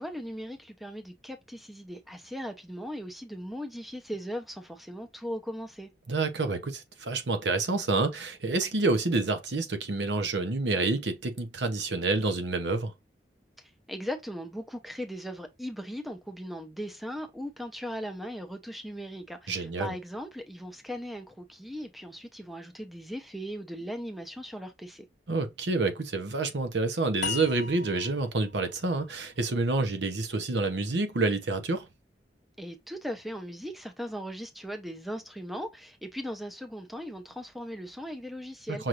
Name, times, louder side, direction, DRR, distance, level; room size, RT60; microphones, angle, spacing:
voice 1, 0.0-5.9 13.6-25.0 32.6-38.8, equal, ahead, 0.7 m, -38 dB
voice 2, 6.1-12.9 19.5-19.9 25.3-31.9 38.7-38.9, right 3 dB, 85° right, 0.9 m, -28 dB
sound 1, 27.2-30.4, left 6 dB, 80° left, 0.5 m, -39 dB
5.8 x 2.5 x 3.0 m
head